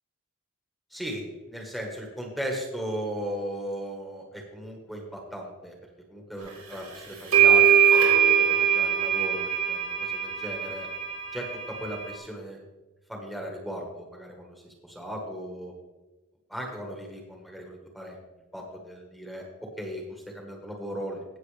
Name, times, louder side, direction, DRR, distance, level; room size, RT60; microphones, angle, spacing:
voice 1, 0.9-5.7 6.1-10.9 11.3-12.6 13.1-15.7 16.5-18.2 18.5-19.5 19.8-21.2, equal, ahead, 0 dB, 1.3 m, -37 dB
sound 1, 6.7-6.8 7.3-12.2, right 8 dB, 85° right, 3.8 m, -22 dB
16.5 x 6.6 x 3.3 m, 1.2 s
head